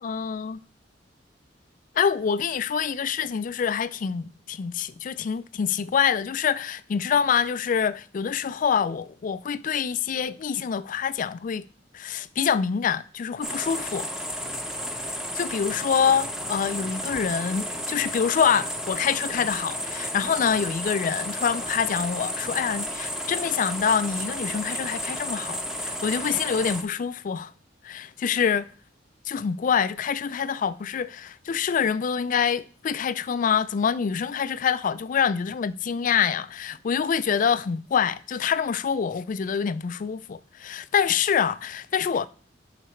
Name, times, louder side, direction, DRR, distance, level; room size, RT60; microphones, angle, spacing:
voice 1, 0.0-0.6 2.0-11.7 11.9-14.1 15.4-27.5 27.8-28.7 29.3-42.3, left 7 dB, 45° left, 0.3 m, -26 dB
sound 1, 13.4-26.8, equal, 5° right, 0.8 m, -32 dB
11.0 x 4.0 x 4.4 m
head